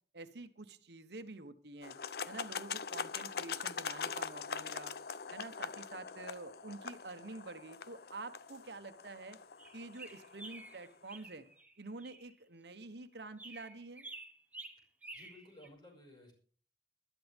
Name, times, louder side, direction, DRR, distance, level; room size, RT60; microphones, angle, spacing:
voice 1, 0.1-2.0 2.3-4.9 5.3-9.4 9.7-11.4 11.8-14.1, right 3 dB, 75° right, 9 dB, 1.2 m, -48 dB
sound 1, 1.8-10.9, left 6 dB, 60° left, 0.6 m, -43 dB
sound 2, 9.6-12.3 13.4-15.7, right 3 dB, 10° right, 1.3 m, -51 dB
voice 2, 15.1-16.3, left 1 dB, 25° left, 1 dB, 6.2 m, -56 dB
20.5 x 12.5 x 3.6 m, 0.43 s
head